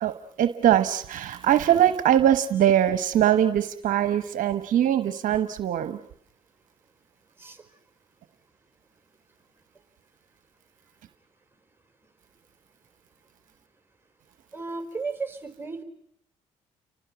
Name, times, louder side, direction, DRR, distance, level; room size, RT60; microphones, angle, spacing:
voice 1, 0.0-6.0, right 11 dB, 65° right, 10 dB, 1.1 m, -22 dB
voice 2, 14.5-15.8, right 4 dB, 15° right, 6 dB, 4.4 m, -34 dB
29.5 x 24.0 x 6.1 m, 0.71 s
supercardioid pair, 60°, 15 cm